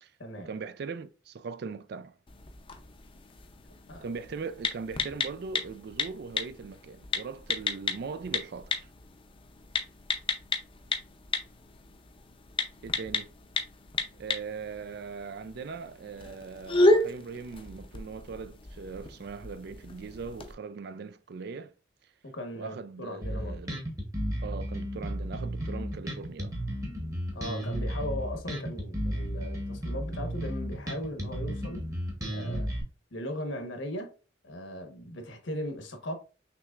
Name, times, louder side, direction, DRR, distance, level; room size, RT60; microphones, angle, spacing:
voice 1, 0.4-2.1 4.0-8.9 12.8-13.3 14.2-21.7 22.6-23.8 24.4-26.6, right 5 dB, 55° right, 0.3 m, -40 dB
sound 1, 2.3-20.5, left 2 dB, 25° left, 0.5 m, -33 dB
voice 2, 22.2-23.6 27.3-31.8 32.3-32.7 33.1-34.1 34.4-36.1, left 1 dB, 75° left, 1.1 m, -38 dB
Bass guitar, 23.2-32.8, equal, 15° right, 1.0 m, -33 dB
6.0 x 3.2 x 2.4 m
head